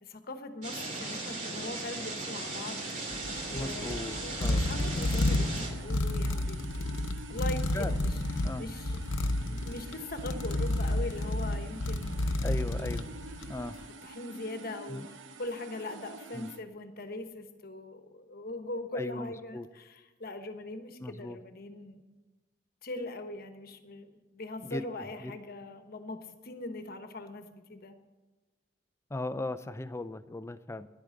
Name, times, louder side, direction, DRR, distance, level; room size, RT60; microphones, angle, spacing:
voice 1, 0.0-6.9 7.3-13.0 14.0-22.0 22.8-28.0, left 2 dB, 50° left, 8 dB, 1.1 m, -41 dB
sound 1, 0.6-5.7, right 2 dB, 40° right, 3.0 m, -37 dB
sound 2, 1.9-16.6, right 3 dB, 85° right, 0.9 m, -48 dB
sound 3, 3.1-13.7, left 1 dB, 90° left, 0.8 m, -31 dB
voice 2, 3.5-4.6 5.1-5.2 7.7-8.0 8.4-8.6 12.4-13.1 13.5-13.8 14.9-15.0 16.3-16.5 18.9-19.7 21.0-21.4 24.6-24.8 25.2-25.3 29.1-30.9, left 2 dB, 15° left, 13 dB, 0.4 m, -37 dB
11.0 x 8.6 x 7.7 m, 1.2 s
head